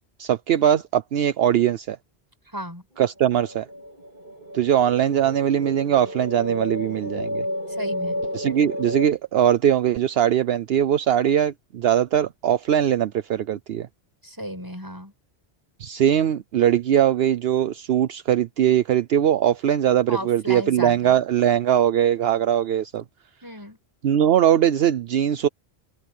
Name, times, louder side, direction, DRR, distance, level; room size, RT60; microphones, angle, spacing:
voice 1, 0.2-2.0 3.0-3.7 4.5-7.5 8.3-13.9 15.8-23.0 24.0-25.5, right 10 dB, 70° right, 0.9 m, -21 dB
voice 2, 2.5-2.8 7.8-8.2 14.2-15.1 20.1-21.2 23.4-23.8, equal, 20° right, 5.7 m, -34 dB
sound 1, 3.2-9.1, equal, 45° right, 2.8 m, -32 dB
omnidirectional pair, 1.1 m